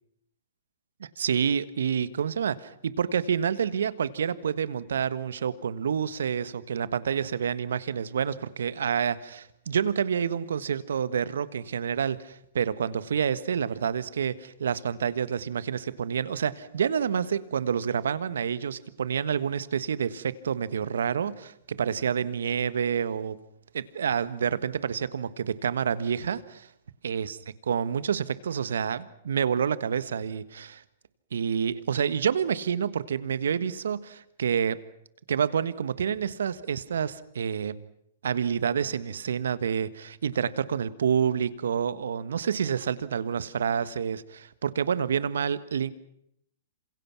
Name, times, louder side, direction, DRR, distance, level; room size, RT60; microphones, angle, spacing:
voice 1, 1.0-23.4 23.7-26.7 27.0-27.4 27.7-30.8 31.3-34.8 35.3-37.8 38.2-45.9, right 7 dB, 75° right, 16 dB, 1.4 m, -28 dB
28.0 x 26.5 x 6.1 m, 0.73 s
hypercardioid pair, 120°, 0 cm